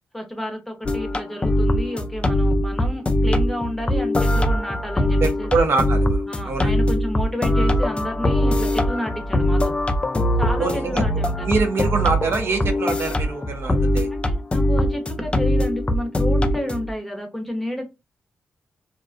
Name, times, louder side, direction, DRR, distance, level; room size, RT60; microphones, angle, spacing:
voice 1, 0.1-5.6 6.3-9.7 10.4-11.5 14.1-17.8, equal, 5° left, 0.8 m, -30 dB
sound 1, 0.8-16.9, left 1 dB, 25° left, 0.3 m, -21 dB
voice 2, 5.2-6.7 10.6-11.0 11.4-14.1, right 4 dB, 60° right, 0.5 m, -24 dB
2.4 x 2.2 x 2.4 m
cardioid pair, 80°, 5 cm